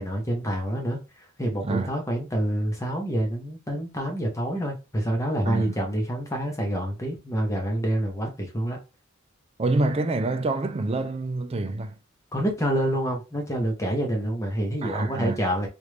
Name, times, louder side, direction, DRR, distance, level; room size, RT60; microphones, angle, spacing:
voice 1, 0.0-8.8 12.3-15.7, right 1 dB, 15° left, 0.9 m, -27 dB
voice 2, 9.6-11.9 14.8-15.4, right 2 dB, 30° right, 0.4 m, -26 dB
3.1 x 2.5 x 3.2 m
head